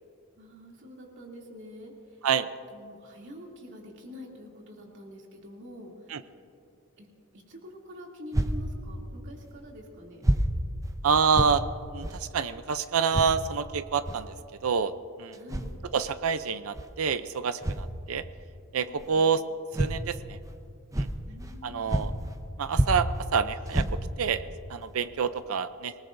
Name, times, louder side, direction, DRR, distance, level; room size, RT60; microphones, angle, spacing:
voice 1, 0.4-1.9 2.7-5.9 7.0-7.1 7.5-10.2 15.3-15.8 18.9-19.3 21.2-22.0, left 1 dB, 55° right, -1 dB, 2.7 m, -46 dB
sound 1, 8.3-8.6 9.4-9.5 10.2-10.5 10.8-10.9 11.3-11.5 12.0-12.2 13.1-13.3 14.0-14.2 15.3-15.7 16.7-16.9 17.6-17.9 19.0-19.1 19.7-20.0 20.4-20.5 20.9-21.6 21.9-22.4 22.7-23.3 23.7-24.3 24.8-24.9 25.4-25.5, right 1 dB, 15° right, 0.7 m, -28 dB
voice 2, 11.0-11.6 11.9-14.3 14.6-14.9 15.2-15.4 15.8-18.2 18.7-19.4 19.8-20.4 21.0-21.1 21.6-22.1 22.6-24.4 24.7-25.9, right 6 dB, 75° right, 12 dB, 0.5 m, -27 dB
26.5 x 19.0 x 2.6 m, 2.4 s
head